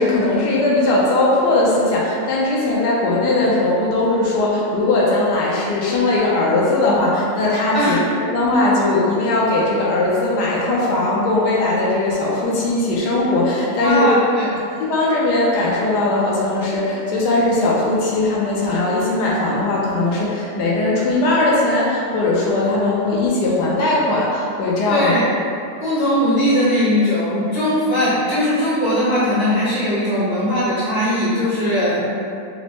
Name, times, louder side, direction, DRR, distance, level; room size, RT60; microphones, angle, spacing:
voice 1, 0.0-14.2 14.8-25.1, left 2 dB, 75° left, -4 dB, 1.2 m, -19 dB
voice 2, 13.8-14.5 24.9-25.2 25.8-32.1, left 1 dB, 25° right, -12 dB, 0.5 m, -19 dB
4.2 x 2.0 x 2.9 m, 2.5 s
omnidirectional pair, 1.8 m